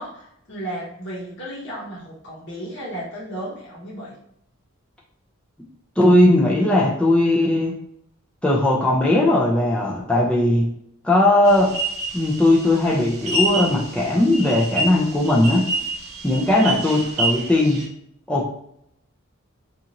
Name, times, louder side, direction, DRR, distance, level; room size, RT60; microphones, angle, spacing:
voice 1, 0.0-4.1, right 1 dB, 55° left, -7 dB, 0.9 m, -34 dB
voice 2, 6.0-7.7 8.4-10.7 11.0-11.7 12.1-15.6 16.2-17.8 18.3-18.5, left 1 dB, 5° left, -4 dB, 0.4 m, -18 dB
sound 1, 11.5-17.9, right 1 dB, 85° right, 0.8 m, -28 dB
2.6 x 2.4 x 2.8 m, 0.73 s
head